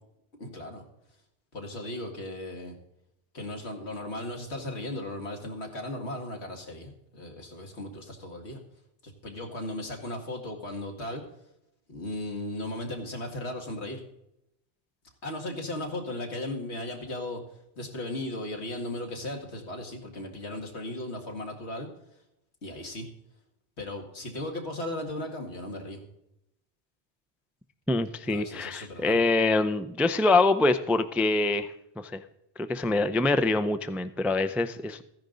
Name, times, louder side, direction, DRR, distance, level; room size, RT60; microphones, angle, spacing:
voice 1, 0.4-0.8 1.5-2.7 3.3-8.6 9.0-11.2 11.9-14.0 15.2-17.4 17.8-21.9 22.6-23.1 23.8-26.0 28.3-29.2, left 1 dB, 85° left, 2 dB, 2.3 m, -36 dB
voice 2, 27.9-32.2 32.6-35.0, left 2 dB, ahead, 11 dB, 0.3 m, -25 dB
14.5 x 10.5 x 3.9 m, 0.82 s
omnidirectional pair, 1.1 m